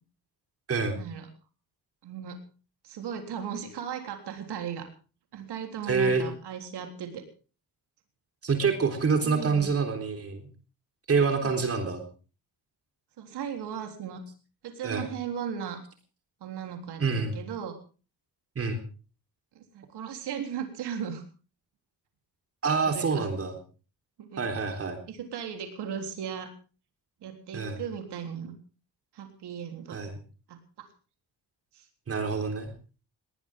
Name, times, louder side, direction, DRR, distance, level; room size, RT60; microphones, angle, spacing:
voice 1, 0.9-1.3 2.0-2.4 2.8-4.9 5.3-7.2 9.2-9.7 11.4-11.6 13.2-14.2 14.6-15.8 16.4-17.8 19.6-21.2 22.9-23.3 24.2-24.4 25.1-26.5 27.2-28.5 29.1-30.0 30.5-30.9 31.7-31.9, right 8 dB, 80° right, 5 dB, 3.6 m, -37 dB
voice 2, 5.9-6.2 8.4-10.5 11.1-12.0 14.8-15.1 17.0-17.4 18.6-18.8 22.6-23.6 24.4-25.0 27.5-27.8 29.9-30.2 32.1-32.7, right 5 dB, 35° right, 5 dB, 3.8 m, -26 dB
20.5 x 19.0 x 3.7 m, 0.37 s
cardioid pair, 150°, 39 cm